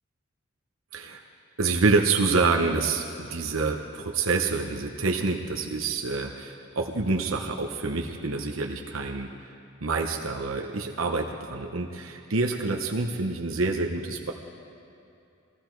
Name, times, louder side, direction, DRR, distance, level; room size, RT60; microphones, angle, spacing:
voice 1, 1.6-9.5 9.8-14.3, right 3 dB, 85° right, 2 dB, 0.9 m, -27 dB
20.0 x 15.5 x 4.6 m, 2.7 s
head